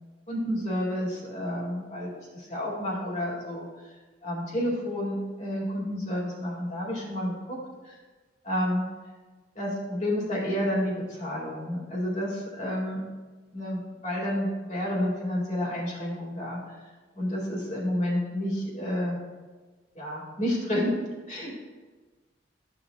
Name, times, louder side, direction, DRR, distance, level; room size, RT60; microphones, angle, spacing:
voice 1, 0.3-7.6 7.8-7.9 8.4-8.9 9.6-13.0 13.5-16.9 17.2-19.2 20.0-20.9 21.3-21.5, left 1 dB, 40° left, -4 dB, 2.1 m, -30 dB
13.0 x 6.8 x 2.3 m, 1.3 s
head